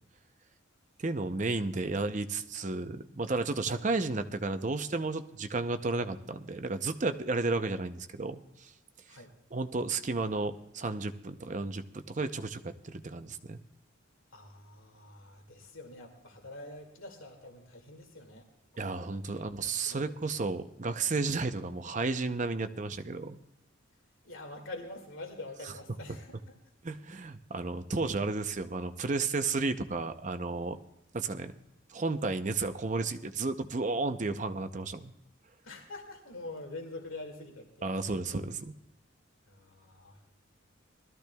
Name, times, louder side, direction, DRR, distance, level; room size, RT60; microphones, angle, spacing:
voice 1, 1.0-8.7 9.5-13.6 18.8-23.4 26.8-30.8 31.1-31.5 31.9-35.1 37.8-38.7, right 3 dB, 40° right, 9 dB, 0.6 m, -33 dB
voice 2, 14.3-18.5 19.3-20.4 24.2-26.4 35.6-37.9 39.5-40.2, left 2 dB, 85° left, 3 dB, 2.2 m, -46 dB
20.0 x 13.5 x 2.3 m, 0.84 s
head